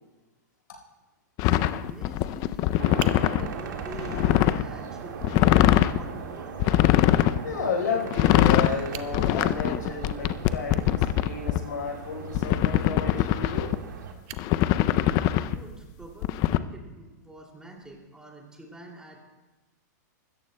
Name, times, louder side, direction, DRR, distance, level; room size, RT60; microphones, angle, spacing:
sound 1, 1.4-3.5 3.9-4.6 5.2-6.0 6.6-7.4 8.1-8.7 9.1-11.6 12.3-13.7 14.3-15.6 16.2-16.6, left 14 dB, 40° left, 0.4 m, -22 dB
voice 1, 1.4-6.5 15.0-19.2, right 2 dB, 5° right, 0 dB, 2.5 m, -45 dB
sound 2, 2.8-14.1, right 6 dB, 85° right, 1.8 m, -39 dB
Fire, 3.0-4.9 5.3-5.4 5.7-5.8 6.2-6.3 8.4-8.5 8.8-10.6 13.4-13.9 14.3-16.5 17.8-18.0, right 11 dB, 45° right, 0.7 m, -43 dB
voice 2, 7.4-13.8, left 5 dB, 90° left, 1 dB, 4.2 m, -32 dB
24.5 x 14.0 x 2.2 m, 1.1 s
hypercardioid pair, 140°, 10 cm